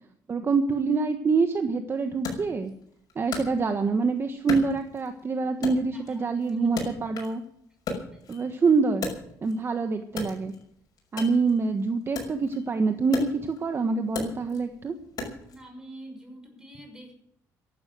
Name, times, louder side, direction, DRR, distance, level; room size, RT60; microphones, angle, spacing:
voice 1, 0.3-2.7 3.1-7.4 8.3-9.1 9.4-10.5 11.1-14.9, right 4 dB, 35° right, 7 dB, 1.3 m, -25 dB
Wood, 2.2-4.0 4.5-5.2 5.6-7.4 7.7-9.7 10.1-15.6, left 3 dB, 60° left, 6.0 m, -37 dB
voice 2, 5.9-6.7 7.9-8.3 15.4-17.1, right 1 dB, 10° right, 3 dB, 6.1 m, -47 dB
14.5 x 11.5 x 7.6 m, 0.71 s
cardioid pair, 110°, 7 cm